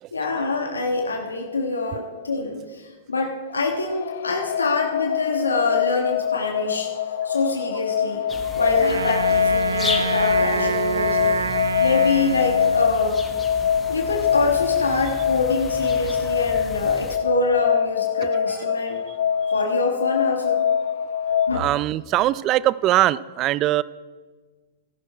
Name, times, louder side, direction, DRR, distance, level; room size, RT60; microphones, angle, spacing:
voice 1, 0.1-6.9 7.2-8.3 8.5-11.4 11.8-13.2 13.9-19.0 19.5-20.6 21.5-21.7, left 3 dB, 85° left, 2 dB, 1.3 m, -25 dB
sound 1, 3.5-21.7, left 8 dB, 65° left, 0.7 m, -24 dB
sound 2, 8.3-17.2, left 3 dB, 15° left, 1.4 m, -35 dB
Wind instrument woodwind instrument, 8.8-13.2, right 6 dB, 80° right, 0.6 m, -27 dB
voice 2, 21.3-23.8, right 14 dB, 35° right, 20 dB, 0.4 m, -21 dB
15.0 x 11.0 x 4.6 m, 1.4 s
hypercardioid pair, 105°, 0 cm